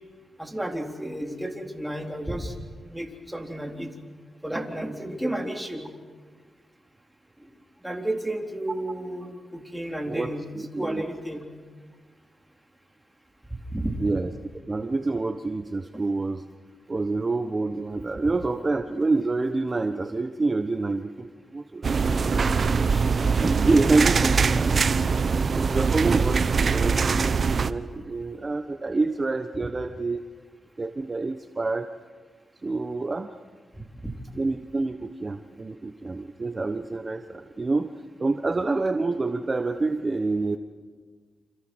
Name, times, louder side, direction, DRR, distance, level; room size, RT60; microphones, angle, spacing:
voice 1, 0.4-2.5 2.8-3.9 4.4-5.8 7.8-10.5 10.8-11.4 13.7-13.9 22.9-23.2 24.7-24.8, right 1 dB, 5° right, 2 dB, 4.0 m, -32 dB
voice 2, 10.0-11.0 14.0-14.3 14.6-16.4 16.9-22.6 23.4-24.8 25.5-30.3 30.8-31.9 32.6-33.4 34.3-37.9 38.2-40.6, right 3 dB, 30° right, 8 dB, 1.1 m, -27 dB
sound 1, 21.8-27.7, right 5 dB, 55° right, 1.0 m, -22 dB
29.0 x 27.0 x 6.3 m, 1.5 s
cardioid pair, 75°, 0 cm